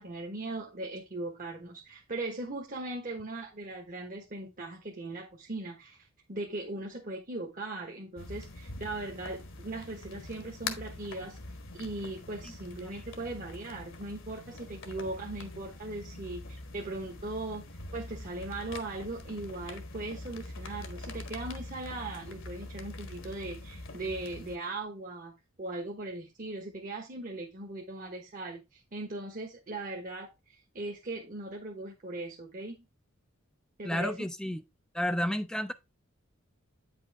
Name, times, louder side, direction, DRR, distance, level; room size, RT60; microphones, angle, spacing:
voice 1, 0.0-11.4 11.7-17.6 17.9-32.8 33.8-34.3, right 2 dB, 40° right, 1.2 m, -39 dB
sound 1, 8.2-24.6, left 2 dB, 65° left, 1.4 m, -44 dB
voice 2, 33.8-34.6 34.9-35.7, equal, 5° left, 0.4 m, -31 dB
8.8 x 5.5 x 3.4 m
head